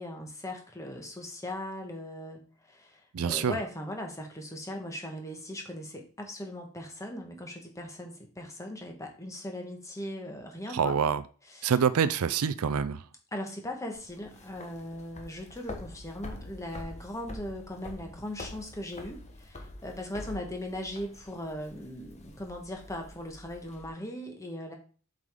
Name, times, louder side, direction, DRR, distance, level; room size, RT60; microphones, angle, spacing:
voice 1, 0.0-11.0 11.5-11.7 13.3-24.7, left 1 dB, 15° left, 1.4 m, -39 dB
voice 2, 3.1-3.5 10.7-11.2 11.6-13.0, right 7 dB, 75° right, 0.4 m, -26 dB
sound 1, 13.9-23.9, left 1 dB, 30° left, 1.0 m, -46 dB
7.4 x 5.1 x 3.6 m
head